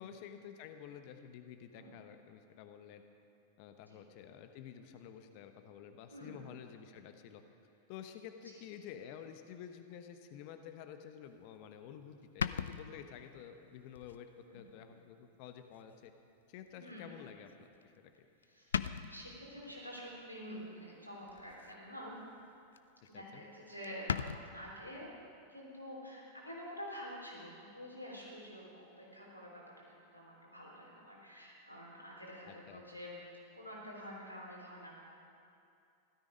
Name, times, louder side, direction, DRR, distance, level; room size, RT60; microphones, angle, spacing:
voice 1, 0.0-3.0 3.6-7.4 7.9-16.1 16.5-17.7 18.0-18.3 23.1-23.4 32.5-32.8, left 9 dB, 45° left, 7 dB, 0.9 m, -51 dB
voice 2, 6.1-6.4 14.4-14.7 16.7-17.2 18.4-22.2 23.1-25.1 25.5-35.0, equal, 90° right, -4 dB, 3.6 m, -48 dB
sound 1, 11.6-11.7 12.4-13.3 13.9-14.2 14.7-14.8 16.0-16.1 17.8-18.2 18.4-18.5 18.7-19.4 21.3-21.8 22.1-22.4 22.7-22.8 23.0-23.1 23.4-23.5 23.8-24.4, left 7 dB, 65° left, 0.4 m, -38 dB
15.5 x 13.0 x 5.2 m, 2.5 s
figure-of-eight pair, 90°, 0 cm